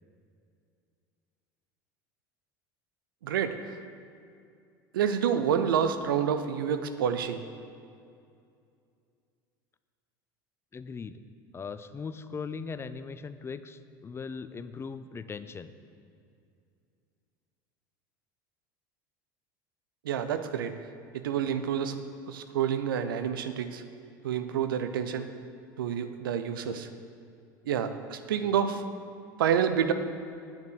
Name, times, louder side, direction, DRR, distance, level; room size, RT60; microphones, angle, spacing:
voice 1, 3.2-3.8 4.9-7.4 20.0-20.8 21.1-22.0 22.3-23.8 24.2-25.3 25.8-26.9 27.7-28.8 29.4-29.9, right 8 dB, 85° right, 10 dB, 0.6 m, -28 dB
voice 2, 10.7-11.2 11.5-15.7 28.5-28.6, left 5 dB, 20° left, 12 dB, 0.4 m, -39 dB
9.1 x 5.7 x 6.3 m, 2.4 s
hypercardioid pair, 85°, 11 cm